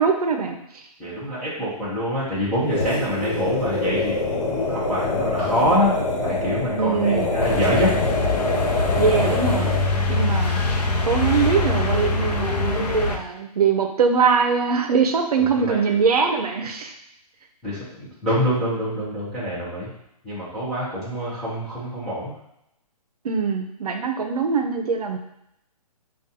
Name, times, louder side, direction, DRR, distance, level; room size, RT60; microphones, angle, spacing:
voice 1, 0.0-0.8 6.8-7.3 9.0-9.7 10.1-10.6 11.0-16.9 23.2-25.2, right 5 dB, 70° right, 4 dB, 0.6 m, -22 dB
voice 2, 1.0-8.0 15.3-16.0 17.6-19.9 20.2-22.4, equal, ahead, -13 dB, 0.5 m, -25 dB
sound 1, 2.6-10.0, left 2 dB, 50° left, 0.7 m, -25 dB
sound 2, 7.4-13.2, left 3 dB, 85° left, 0.7 m, -23 dB
4.9 x 2.3 x 2.7 m, 0.80 s
hypercardioid pair, 175°, 20 cm